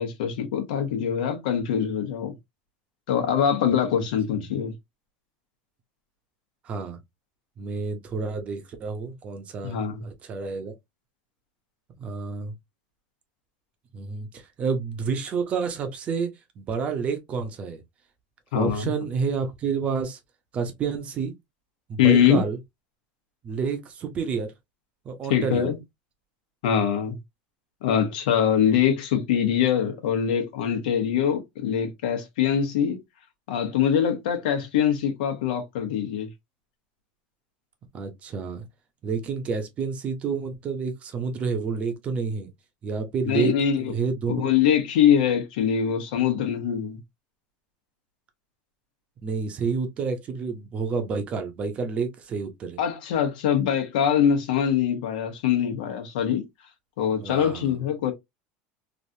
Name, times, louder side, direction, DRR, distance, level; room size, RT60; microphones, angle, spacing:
voice 1, 0.0-2.3 3.1-4.7 9.6-10.1 18.5-18.9 22.0-22.4 25.3-25.8 26.6-27.1 27.8-33.0 33.5-36.3 43.2-43.9 44.3-47.0 52.8-56.4 57.0-58.1, left 8 dB, 90° left, 1.1 m, -23 dB
voice 2, 6.6-7.0 7.6-10.7 12.0-12.5 13.9-17.8 18.5-20.2 20.5-21.3 21.9-22.6 23.4-24.5 25.0-25.7 37.9-38.6 39.0-42.5 42.8-43.5 43.8-44.5 49.2-52.8 57.2-57.8, right 5 dB, 30° right, 0.7 m, -29 dB
3.2 x 2.5 x 2.6 m
supercardioid pair, 155°, 5 cm